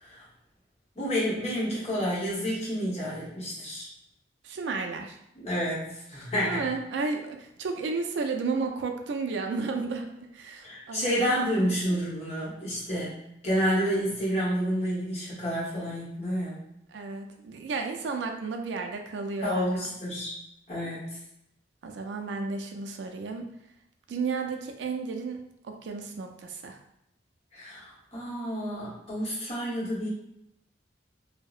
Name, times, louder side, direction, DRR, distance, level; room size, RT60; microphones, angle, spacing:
voice 1, 0.9-3.8 5.4-6.6 10.6-16.6 19.4-20.3 20.7-21.1 27.5-30.1, equal, 35° left, -7 dB, 1.0 m, -29 dB
voice 2, 4.4-5.2 6.4-11.5 16.9-19.9 21.8-23.5 24.1-26.8, right 4 dB, 75° right, 4 dB, 0.3 m, -33 dB
2.7 x 2.0 x 2.3 m, 0.79 s
head